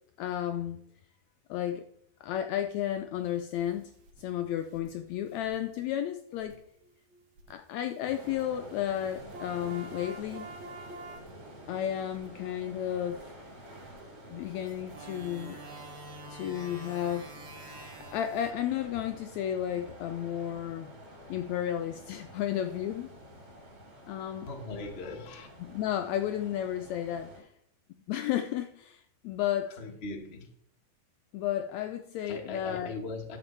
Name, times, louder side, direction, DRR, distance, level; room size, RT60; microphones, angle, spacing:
voice 1, 0.2-0.8 1.5-1.8 2.2-3.9 4.2-6.6 7.5-10.5 11.7-13.3 14.3-15.6 16.3-17.4 17.7-17.8 18.1-20.9 21.3-23.1 24.1-24.5 25.7-27.5 27.9-29.7 31.3-32.9, left 11 dB, 80° left, 7 dB, 1.6 m, -33 dB
sound 1, 4.1-4.2 4.7-4.9 5.3-7.5 8.2-8.4 9.1-11.6 12.1-12.3 13.1-13.2 13.9-14.0 14.7-18.5, right 2 dB, 65° right, 2.6 m, -47 dB
sound 2, 8.0-27.4, equal, 40° right, 2.8 m, -49 dB
voice 2, 24.5-25.5 29.7-30.5 32.2-33.4, left 3 dB, 50° left, 2 dB, 0.7 m, -39 dB
11.0 x 6.9 x 4.4 m, 0.70 s
omnidirectional pair, 3.6 m